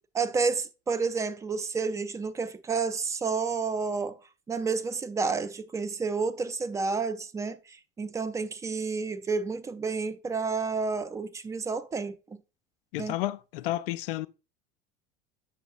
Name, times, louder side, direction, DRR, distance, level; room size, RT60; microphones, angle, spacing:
voice 1, 0.1-4.2 4.5-12.4 13.0-13.1, right 4 dB, 10° right, 0.3 m, -30 dB
voice 2, 12.9-14.3, left 15 dB, 50° left, 0.5 m, -31 dB
8.4 x 6.9 x 2.4 m
figure-of-eight pair, 75°, 37 cm